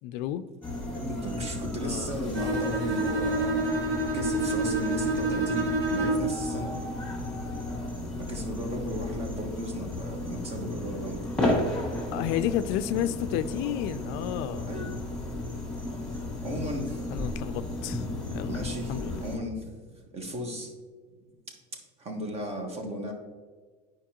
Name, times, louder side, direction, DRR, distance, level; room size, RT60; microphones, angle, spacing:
voice 1, 0.0-0.4 1.8-2.1 12.1-14.7 17.1-18.0 18.3-18.6 18.9-19.2, left 11 dB, 65° left, 12 dB, 0.4 m, -31 dB
sound 1, 0.6-19.4, left 1 dB, 5° left, 2.0 m, -34 dB
voice 2, 0.9-3.9 4.1-6.8 8.2-11.4 14.7-15.0 16.1-17.1 18.5-20.7 22.0-23.1, equal, 30° right, 3 dB, 1.4 m, -35 dB
Bowed string instrument, 2.3-6.4, right 2 dB, 60° right, 1.9 m, -28 dB
9.5 x 5.2 x 2.9 m, 1.5 s
cardioid pair, 140°, 20 cm